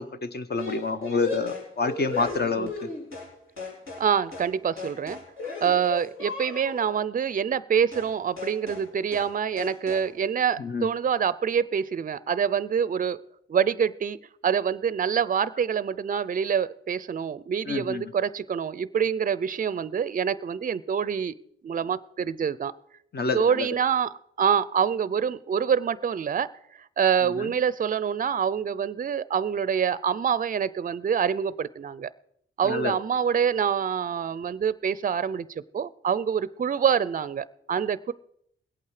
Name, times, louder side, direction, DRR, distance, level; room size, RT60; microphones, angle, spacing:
voice 1, 0.0-2.9 10.6-10.9 17.7-18.1 23.1-23.7 27.2-27.5 32.6-32.9, left 4 dB, 50° left, 9 dB, 1.0 m, -28 dB
sound 1, 0.6-3.3 3.6-4.1 4.3-4.5 4.8-6.9 7.9-8.1 8.4-8.9 9.1-9.3 9.6-10.1, left 3 dB, 70° left, 4.0 m, -36 dB
voice 2, 4.0-5.2 5.6-13.2 13.5-14.2 14.4-21.3 21.6-22.7 23.3-24.1 24.4-26.5 27.0-32.1 32.6-35.5 35.7-38.1, right 7 dB, 40° right, 18 dB, 0.4 m, -26 dB
20.5 x 8.6 x 4.8 m, 0.71 s
wide cardioid pair, 90°, 21 cm